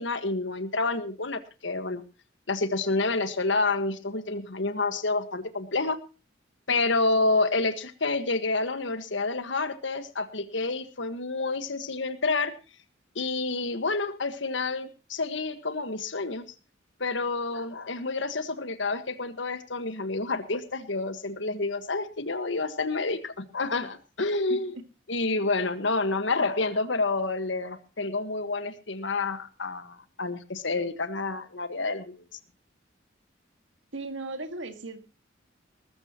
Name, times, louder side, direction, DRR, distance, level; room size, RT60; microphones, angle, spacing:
voice 1, 0.0-2.0 2.5-6.0 6.7-12.5 13.1-16.4 17.0-24.7 25.1-32.2, left 3 dB, 70° left, 10 dB, 1.6 m, -29 dB
voice 2, 33.9-35.0, right 2 dB, 75° right, 8 dB, 2.0 m, -36 dB
20.5 x 13.5 x 3.0 m, 0.33 s
head